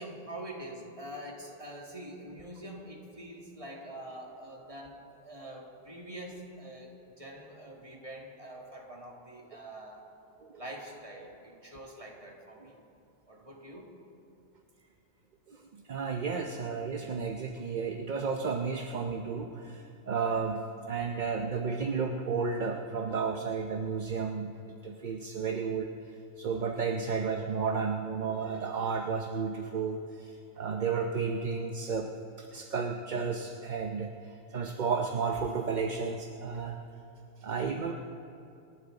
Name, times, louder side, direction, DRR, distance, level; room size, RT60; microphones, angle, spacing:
voice 1, 0.0-10.0 10.5-12.8 13.3-13.9, right 1 dB, 30° right, -2 dB, 2.3 m, -45 dB
voice 2, 15.5-24.6 24.8-32.1 32.4-36.8 37.4-37.9, right 5 dB, 45° right, 3 dB, 0.8 m, -33 dB
28.0 x 11.5 x 3.9 m, 2.6 s
omnidirectional pair, 1.2 m